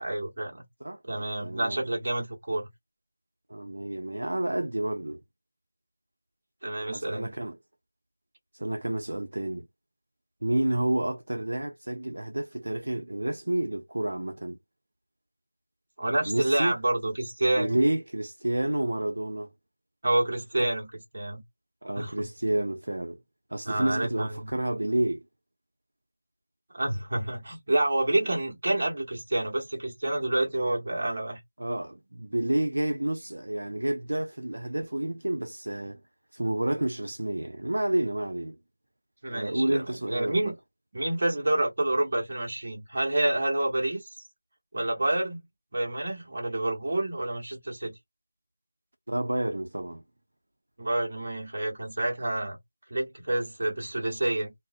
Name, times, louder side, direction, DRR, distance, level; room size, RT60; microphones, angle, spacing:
voice 1, 0.0-0.6 1.0-2.7 6.6-7.3 16.0-17.8 20.0-21.4 22.0-22.3 23.7-24.5 26.7-31.4 39.2-40.5 40.9-44.1 44.7-45.4 45.7-48.0 50.8-52.6 52.9-54.5, right 1 dB, 40° right, 1.1 m, -28 dB
voice 2, 0.8-1.8 3.5-5.2 6.9-7.6 8.5-9.7 10.4-14.6 16.3-16.8 17.6-19.5 21.8-23.2 23.5-25.2 31.6-36.0 36.3-38.6 39.3-40.5 49.1-50.0, right 1 dB, 70° right, 0.5 m, -29 dB
2.5 x 2.0 x 2.5 m
figure-of-eight pair, 175°, 0 cm